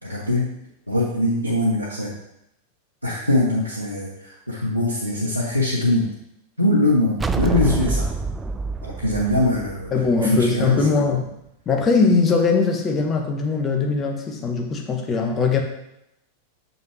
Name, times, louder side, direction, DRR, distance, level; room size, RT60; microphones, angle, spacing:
voice 1, 0.0-0.5 0.9-2.1 3.0-6.1 6.6-8.1 8.8-10.8, left 1 dB, 90° left, -5 dB, 1.0 m, -22 dB
sound 1, 7.2-10.6, right 4 dB, 15° right, 0.3 m, -26 dB
voice 2, 9.9-11.3 11.7-15.6, left 4 dB, 25° left, 2 dB, 1.2 m, -20 dB
7.2 x 5.4 x 3.2 m, 0.81 s
figure-of-eight pair, 90°, 0 cm